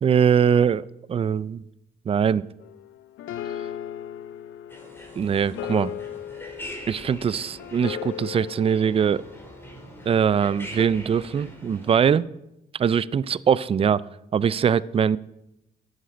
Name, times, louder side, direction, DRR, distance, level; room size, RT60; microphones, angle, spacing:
voice 1, 0.0-1.6 2.1-2.4 5.2-5.9 6.9-9.2 10.1-12.3 12.8-14.0 14.3-15.2, right 7 dB, 30° right, 21 dB, 0.3 m, -22 dB
sound 1, 2.6-10.0 10.8-10.9, left 10 dB, 85° left, 0.6 m, -37 dB
sound 2, 4.7-12.1, equal, 10° left, 2.8 m, -43 dB
10.0 x 10.0 x 5.2 m, 0.88 s
cardioid pair, 90°, 20 cm